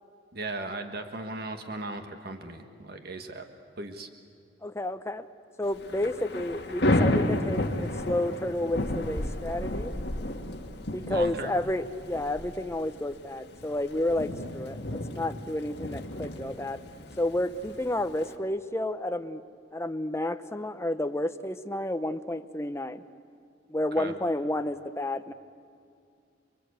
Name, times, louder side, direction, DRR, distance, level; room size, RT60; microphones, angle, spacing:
voice 1, 0.3-3.5 3.8-4.1 11.1-11.6 24.0-24.1, right 2 dB, 60° right, 6 dB, 1.7 m, -37 dB
voice 2, 4.6-5.3 5.6-9.9 10.9-16.8 17.2-19.4 19.7-23.0 23.7-25.3, left 1 dB, 15° left, 9 dB, 0.9 m, -31 dB
Thunder / Rain, 5.7-18.3, left 1 dB, 65° left, 2.1 m, -32 dB
29.5 x 22.5 x 8.3 m, 2.3 s
head